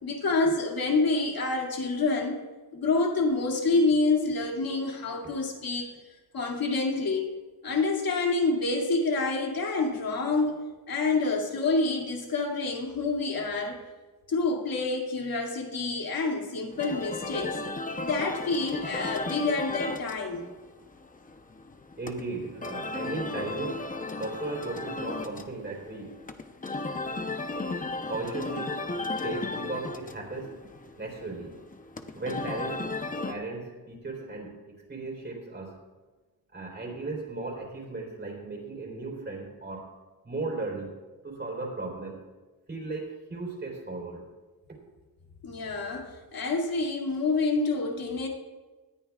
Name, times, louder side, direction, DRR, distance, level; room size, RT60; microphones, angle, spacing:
voice 1, 0.0-2.4 2.7-5.9 6.3-7.3 7.6-10.6 10.9-13.8 14.3-17.6 18.0-20.5 45.4-48.3, left 3 dB, 70° left, 0 dB, 2.5 m, -27 dB
sound 1, 16.7-33.3, left 3 dB, 20° left, 0.8 m, -35 dB
voice 2, 22.0-23.9 24.2-26.2 28.1-28.9 29.2-30.6 31.0-31.6 32.2-32.9 33.3-35.8 36.5-39.9 40.2-42.2 42.7-44.2, right 3 dB, 30° right, -1 dB, 3.7 m, -36 dB
19.0 x 13.5 x 2.4 m, 1.2 s
wide cardioid pair, 150°, 37 cm